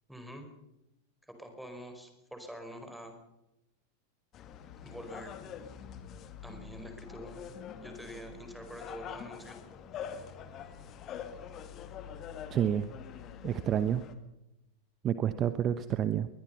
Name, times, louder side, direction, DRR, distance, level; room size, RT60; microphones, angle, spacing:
voice 1, 0.1-0.5 1.2-3.2 4.8-5.3 6.4-9.6 10.0-10.4, equal, ahead, 5 dB, 4.7 m, -46 dB
sound 1, 4.3-14.1, left 8 dB, 30° left, 2.0 m, -45 dB
voice 2, 12.5-12.9 13.4-14.0 15.0-16.3, right 10 dB, 30° right, 13 dB, 1.0 m, -29 dB
22.5 x 21.0 x 5.5 m, 0.92 s
figure-of-eight pair, 90°, 0 cm